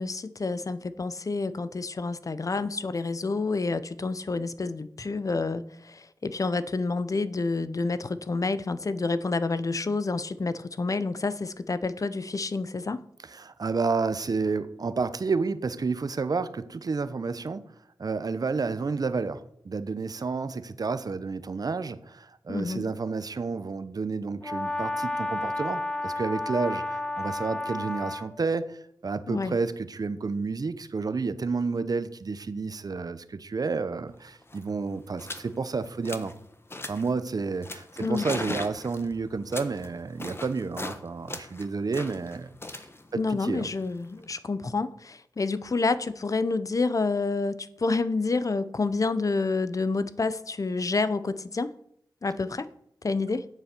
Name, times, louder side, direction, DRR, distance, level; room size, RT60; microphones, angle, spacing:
voice 1, 0.0-13.0 22.5-22.9 29.3-29.5 38.0-38.3 43.2-51.7 52.2-52.7 53.0-53.5, left 3 dB, 45° left, 0.7 m, -28 dB
voice 2, 13.3-17.6 18.0-36.3 36.9-42.9 43.1-43.7, right 4 dB, 55° right, 0.8 m, -30 dB
Brass instrument, 24.4-28.3, left 2 dB, 10° left, 1.4 m, -31 dB
sound 1, 34.1-34.2 34.4-34.7 35.2-35.5 35.8-36.4 36.7-37.1 37.6-41.0 41.3-44.3, left 2 dB, 30° left, 1.2 m, -39 dB
8.2 x 7.3 x 6.8 m
cardioid pair, 50°, 8 cm